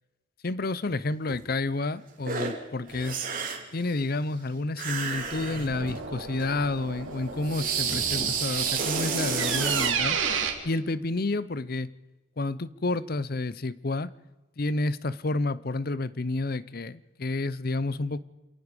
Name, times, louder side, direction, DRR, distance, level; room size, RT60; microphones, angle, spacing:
voice 1, 0.4-3.3 3.7-10.2 10.6-11.9 12.4-14.1 14.6-18.2, left 2 dB, 50° left, 17 dB, 0.7 m, -30 dB
sound 1, 1.3-1.4 2.2-2.6 2.9-3.7 4.8-6.0 6.4-6.5 7.4-10.0, right 6 dB, 45° right, 2.9 m, -30 dB
sound 2, 5.1-10.5, right 6 dB, 75° right, 3.1 m, -32 dB
27.5 x 18.0 x 5.3 m, 1.2 s
head